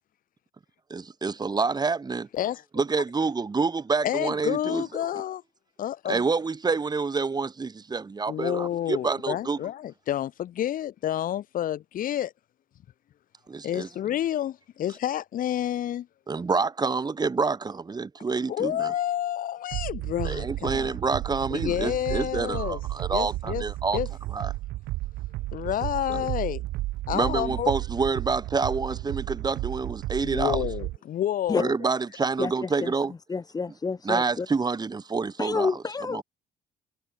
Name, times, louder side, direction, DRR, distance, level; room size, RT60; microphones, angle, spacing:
voice 1, 0.9-2.3 2.7-5.1 6.1-9.6 13.5-13.9 16.3-18.9 20.2-24.0 24.3-24.5 26.1-26.3 27.1-30.7 31.6-33.1 34.0-35.8 36.1-36.2, right 4 dB, 25° right, 3.2 m, -27 dB
voice 2, 4.0-5.4 5.8-6.2 8.3-12.3 13.6-16.1 18.5-20.9 21.5-22.8 23.1-23.6 23.9-24.1 25.5-26.6 27.1-27.7 30.2-31.8, left 11 dB, 55° left, 1.3 m, -29 dB
sound 1, 19.7-31.0, right 18 dB, 80° right, 1.5 m, -33 dB
voice 3, 33.3-34.5 35.4-36.2, left 4 dB, 20° left, 1.3 m, -28 dB
cardioid pair, 110°, 17 cm